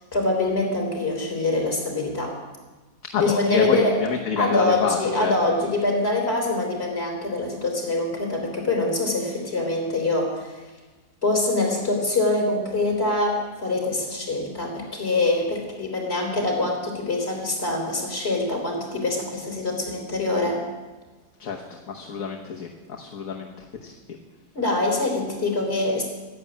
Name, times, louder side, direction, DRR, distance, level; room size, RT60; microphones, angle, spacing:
voice 1, 0.1-2.4 3.1-4.0 4.4-10.6 11.2-20.6 24.5-26.0, left 2 dB, 40° left, 0 dB, 3.8 m, -24 dB
voice 2, 3.1-5.3 21.4-21.6 21.9-23.5 23.8-23.9, left 6 dB, 65° left, 1 dB, 1.5 m, -27 dB
11.0 x 11.0 x 8.4 m, 1.2 s
omnidirectional pair, 1.7 m